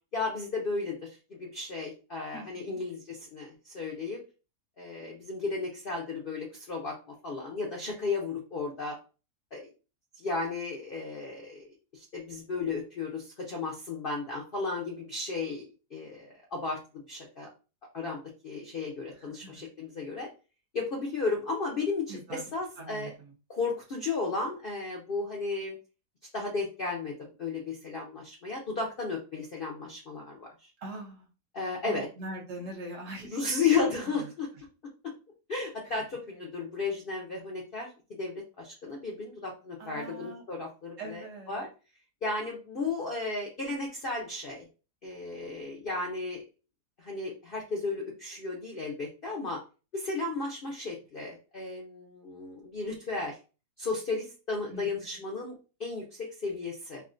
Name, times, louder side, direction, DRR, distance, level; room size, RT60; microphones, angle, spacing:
voice 1, 0.1-4.2 4.8-6.9 7.2-8.9 9.5-9.6 10.1-15.6 15.9-17.5 17.9-20.3 20.7-23.1 23.5-25.7 26.3-27.1 27.4-30.7 31.5-32.1 33.2-34.5 35.5-37.9 38.2-41.7 42.2-44.7 45.0-46.4 47.0-49.6 49.9-53.4 53.8-57.0, left 4 dB, 60° left, -2 dB, 0.5 m, -34 dB
voice 2, 2.3-2.8 19.2-19.5 22.1-22.4 22.8-23.1 30.8-31.3 31.8-33.6 34.0-34.2 39.8-40.4 41.0-41.6 54.7-55.2, right 2 dB, 60° right, -1 dB, 1.0 m, -42 dB
3.5 x 2.1 x 2.5 m, 0.32 s
omnidirectional pair, 1.7 m